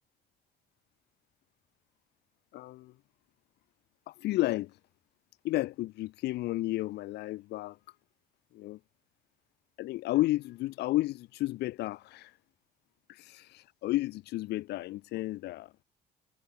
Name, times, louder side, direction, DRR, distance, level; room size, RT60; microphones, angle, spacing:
voice 1, 2.5-2.9 4.1-4.8 5.4-7.8 8.5-8.8 9.8-12.4 13.1-15.7, left 17 dB, 80° left, 1.5 m, -32 dB
cardioid pair, 110°, 17 cm